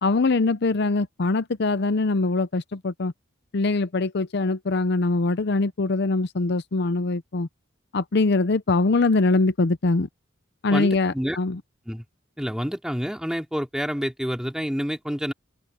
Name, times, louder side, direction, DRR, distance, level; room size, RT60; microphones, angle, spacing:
voice 1, 0.0-3.1 3.5-7.5 7.9-10.1 10.6-11.6, left 3 dB, 60° left, 0.6 m, -23 dB
voice 2, 10.7-11.4 11.9-12.0 12.4-15.3, equal, 5° right, 2.7 m, -28 dB
head